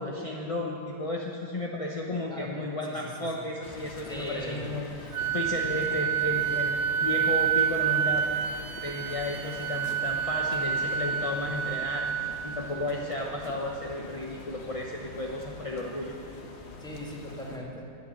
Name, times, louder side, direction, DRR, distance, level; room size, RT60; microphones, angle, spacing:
voice 1, 0.0-4.9 5.3-8.3 8.8-12.1 12.4-16.1, left 2 dB, 25° left, -1 dB, 0.8 m, -33 dB
sound 1, 2.0-11.0, left 2 dB, 85° left, 3.1 m, -53 dB
voice 2, 2.3-3.0 3.4-3.5 4.1-4.8 16.8-17.8, equal, ahead, -3 dB, 2.0 m, -39 dB
sound 2, 3.6-17.6, left 2 dB, 40° left, 1.3 m, -45 dB
Wind instrument woodwind instrument, 5.1-12.9, right 8 dB, 70° right, 1.1 m, -28 dB
11.5 x 10.5 x 9.2 m, 2.7 s
omnidirectional pair, 1.9 m